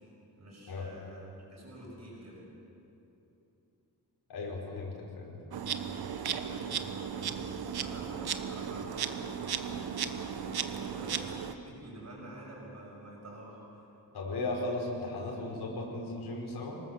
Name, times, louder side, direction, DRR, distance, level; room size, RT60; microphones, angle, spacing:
voice 1, 0.4-2.4 6.4-9.5 10.4-13.9, right 1 dB, 45° right, -8 dB, 5.8 m, -49 dB
voice 2, 4.3-5.3 14.1-16.8, left 2 dB, 80° left, -2 dB, 5.2 m, -36 dB
Insect, 5.5-11.5, right 7 dB, 70° right, 1.2 m, -35 dB
25.5 x 19.5 x 7.5 m, 2.9 s
wide cardioid pair, 170°, 39 cm